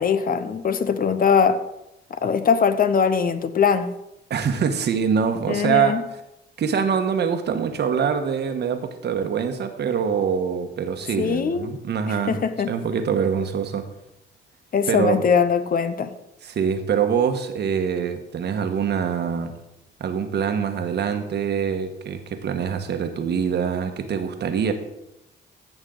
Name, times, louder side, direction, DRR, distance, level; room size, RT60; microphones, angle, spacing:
voice 1, 0.0-1.6 2.1-3.9 5.5-6.0 11.2-11.8 12.1-12.7 14.7-16.1, left 6 dB, 45° left, 11 dB, 0.8 m, -21 dB
voice 2, 4.3-6.0 6.6-12.4 12.7-13.8 14.9-15.2 16.4-19.5 20.0-24.7, right 7 dB, 60° right, 7 dB, 1.2 m, -24 dB
15.0 x 6.3 x 3.9 m, 0.89 s
cardioid pair, 90°, 20 cm